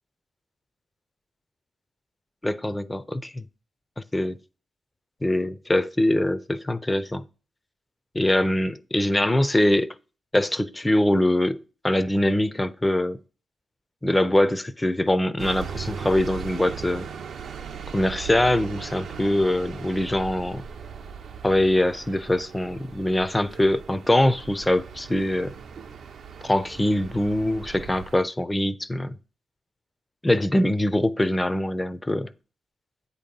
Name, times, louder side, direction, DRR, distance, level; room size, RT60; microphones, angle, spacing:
voice 1, 2.4-3.4 4.1-4.4 5.2-7.2 8.1-9.9 10.3-13.2 14.0-17.1 17.9-20.6 21.4-25.5 26.4-29.1 30.2-32.3, left 1 dB, 15° left, 0.4 m, -23 dB
sound 1, 15.4-28.2, right 7 dB, 70° right, 0.5 m, -38 dB
8.3 x 2.8 x 5.2 m
cardioid pair, 90°, 0 cm